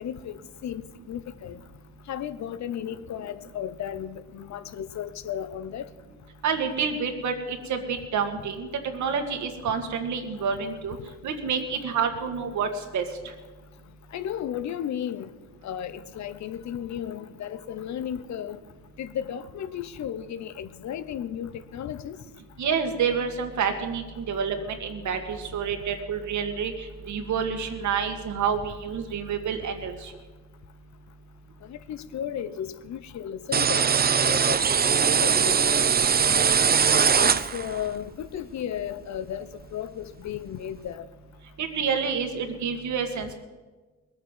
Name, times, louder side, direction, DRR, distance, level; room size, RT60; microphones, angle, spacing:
voice 1, 0.0-1.6 2.1-5.9 14.1-15.3 15.6-18.6 19.0-22.2 31.6-33.9 34.1-35.9 36.2-36.4 37.2-41.1, left 9 dB, 65° left, 0.9 m, -34 dB
voice 2, 6.4-11.0 11.2-13.0 22.6-30.1 41.6-43.3, right 6 dB, 70° right, 2.2 m, -28 dB
sound 1, 33.5-37.9, right 7 dB, 30° right, 0.7 m, -21 dB
20.0 x 8.8 x 7.5 m
cardioid pair, 90°, 30 cm